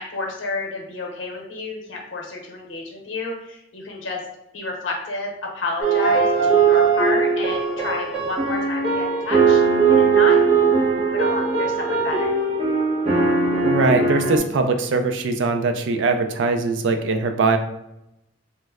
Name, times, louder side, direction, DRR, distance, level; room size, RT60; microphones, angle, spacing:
voice 1, 0.0-4.2 4.5-9.6 9.9-12.3, left 3 dB, 85° left, -1 dB, 0.7 m, -30 dB
sound 1, 5.8-14.4, right 5 dB, 30° right, 0.9 m, -19 dB
voice 2, 13.6-17.6, right 3 dB, 70° right, 6 dB, 0.4 m, -21 dB
3.1 x 2.1 x 3.4 m, 0.86 s
head